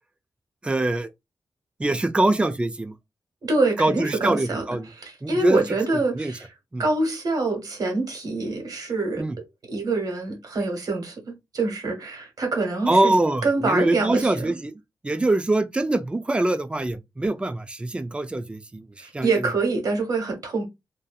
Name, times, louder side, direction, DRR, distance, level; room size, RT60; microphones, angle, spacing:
voice 1, 0.6-1.1 1.8-2.9 3.8-4.9 5.2-5.6 6.1-6.3 6.7-6.8 9.2-9.4 12.9-14.7 15.0-19.4, right 2 dB, 15° right, 0.3 m, -23 dB
voice 2, 3.4-6.5 6.8-13.1 13.4-14.5 19.0-20.6, right 3 dB, 55° right, 1.2 m, -26 dB
2.6 x 2.5 x 2.3 m
wide cardioid pair, 120°, 8 cm